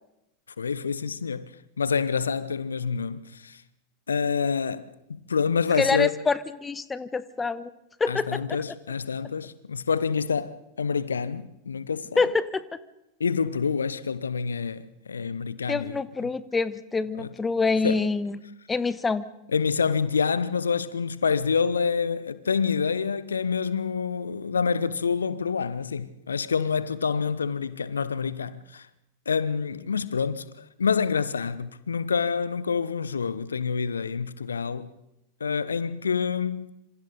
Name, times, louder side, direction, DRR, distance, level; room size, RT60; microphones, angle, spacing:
voice 1, 0.6-3.6 4.1-4.9 5.3-6.1 8.1-12.1 13.2-16.0 17.2-17.3 17.8-18.1 19.5-28.9 29.3-30.4 30.8-34.9 35.4-36.7, left 6 dB, 70° left, 0.8 m, -27 dB
voice 2, 5.8-7.7 8.0-8.4 12.2-12.6 15.7-18.4 18.7-19.2, left 4 dB, 15° left, 0.9 m, -26 dB
26.5 x 26.5 x 4.0 m
figure-of-eight pair, 90°, 0 cm